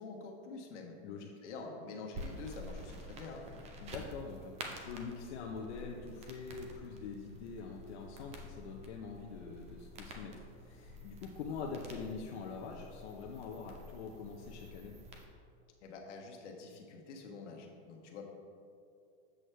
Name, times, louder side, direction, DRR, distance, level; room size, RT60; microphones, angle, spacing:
voice 1, 0.0-0.9 1.4-3.5 15.8-18.3, left 4 dB, 90° left, 1 dB, 1.3 m, -47 dB
sound 1, 2.1-15.2, equal, 20° right, 0.5 m, -49 dB
voice 2, 3.8-15.0, left 5 dB, 70° left, 0 dB, 0.8 m, -44 dB
7.8 x 6.2 x 3.3 m, 2.5 s
supercardioid pair, 155°, 35 cm